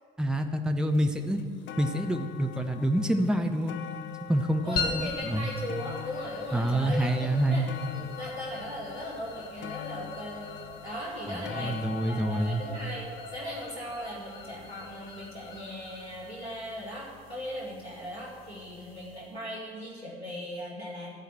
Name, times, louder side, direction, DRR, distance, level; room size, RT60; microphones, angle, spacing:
voice 1, 0.2-1.4 1.8-3.8 4.3-5.5 6.5-7.7 11.3-12.6, right 1 dB, ahead, 6 dB, 0.8 m, -27 dB
sound 1, 0.9-1.0 1.4-14.6 15.3-15.4, left 10 dB, 40° left, 0.6 m, -44 dB
voice 2, 4.6-7.7 7.9-10.5 10.8-21.1, left 1 dB, 90° right, -4 dB, 2.1 m, -38 dB
sound 2, 4.8-19.4, left 4 dB, 65° left, 1.0 m, -42 dB
Wind, 7.8-13.9, right 1 dB, 30° right, 2.1 m, -48 dB
14.5 x 4.9 x 7.6 m, 2.1 s
figure-of-eight pair, 60°, 31 cm